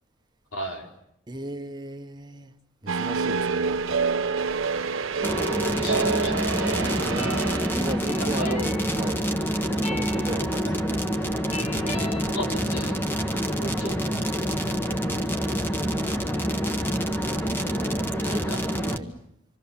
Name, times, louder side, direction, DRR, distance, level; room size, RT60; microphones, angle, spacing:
voice 1, 0.5-0.9 5.6-6.6 8.2-8.6 8.9-9.2 12.3-13.0 13.6-14.0 18.2-18.6, equal, 85° left, 1 dB, 4.5 m, -35 dB
voice 2, 1.3-2.5 2.8-4.0 6.8-9.2 9.8-11.1 17.5-18.5 18.8-19.1, right 1 dB, 20° right, 6 dB, 1.2 m, -37 dB
sound 1, 2.9-8.2, right 5 dB, 70° right, 1.2 m, -27 dB
sound 2, 5.2-19.0, equal, 10° left, 1.2 m, -27 dB
sound 3, 6.1-12.2, equal, 30° left, 1.6 m, -36 dB
27.0 x 26.0 x 7.2 m, 0.75 s
head